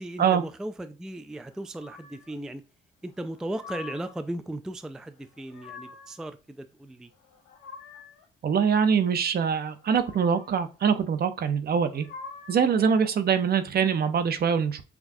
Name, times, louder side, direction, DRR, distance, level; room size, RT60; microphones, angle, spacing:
voice 1, 0.0-2.6 3.0-7.1, right 1 dB, 5° right, 10 dB, 0.3 m, -36 dB
sound 1, 1.8-2.4 3.2-4.2 5.2-6.2 7.1-8.3 9.8-10.7 11.8-12.8, left 5 dB, 85° left, 1.1 m, -46 dB
voice 2, 8.4-12.0 12.5-14.8, right 7 dB, 50° right, 10 dB, 0.7 m, -24 dB
6.0 x 2.3 x 2.7 m, 0.33 s
cardioid pair, 90°, 20 cm